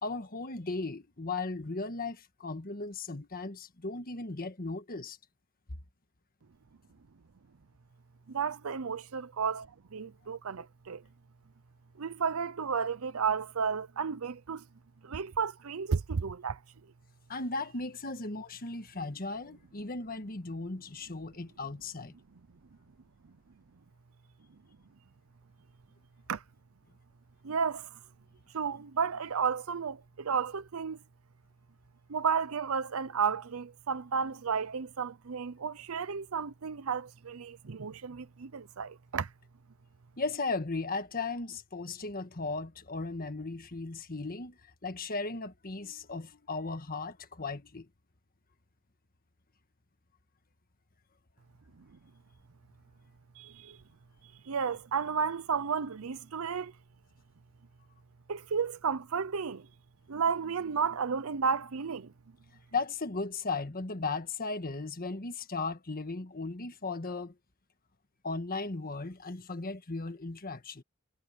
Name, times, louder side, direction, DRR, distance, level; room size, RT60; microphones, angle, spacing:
voice 1, 0.0-5.2 17.3-22.1 40.2-47.9 62.7-67.3 68.2-70.8, left 3 dB, 45° left, 1.5 m, -36 dB
voice 2, 8.3-11.0 12.0-14.6 15.0-16.6 26.3-26.4 27.4-28.0 28.5-31.0 32.1-39.3 53.4-53.8 54.4-56.7 58.3-59.7 60.1-62.1, right 6 dB, 75° right, 0.6 m, -32 dB
head